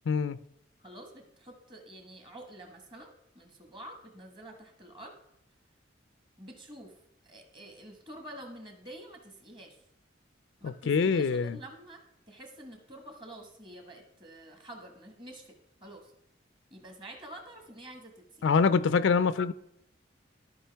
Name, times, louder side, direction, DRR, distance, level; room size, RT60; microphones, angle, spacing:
voice 1, 0.1-0.4 10.6-11.6 18.4-19.5, left 5 dB, 80° left, 0.4 m, -25 dB
voice 2, 0.8-5.2 6.4-7.0 7.2-9.8 10.6-12.0 12.3-15.5 15.8-16.1 16.7-18.4, right 1 dB, 25° right, 1.3 m, -48 dB
13.0 x 5.2 x 3.4 m
head